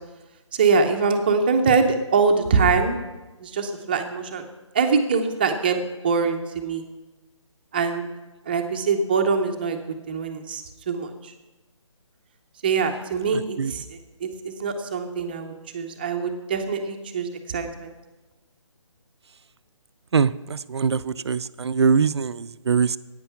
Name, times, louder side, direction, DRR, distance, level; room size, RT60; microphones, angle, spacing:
voice 1, 0.5-3.0 3.4-4.4 4.7-6.8 7.7-8.1 8.5-9.8 10.1-11.3 12.6-17.9, right 5 dB, 20° right, 5 dB, 0.7 m, -23 dB
voice 2, 13.3-13.7 20.1-23.0, right 6 dB, 55° right, 16 dB, 0.5 m, -23 dB
14.0 x 9.5 x 5.8 m, 1.1 s
hypercardioid pair, 170°, 16 cm